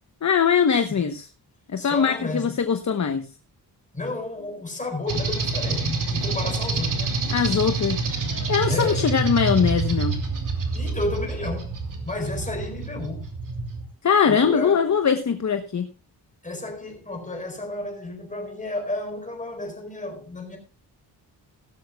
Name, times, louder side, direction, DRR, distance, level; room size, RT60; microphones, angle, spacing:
voice 1, 0.2-1.3 1.7-3.3 7.3-8.0 8.5-10.2 14.0-15.9, left 6 dB, 45° left, 1.0 m, -21 dB
voice 2, 1.8-2.6 3.9-7.2 8.6-9.1 10.7-11.8 12.0-13.3 14.3-14.9 16.4-20.6, left 2 dB, 20° left, 4.2 m, -32 dB
sound 1, 5.1-13.8, right 3 dB, 50° right, 2.9 m, -27 dB
17.0 x 13.5 x 2.3 m
wide cardioid pair, 140°, 41 cm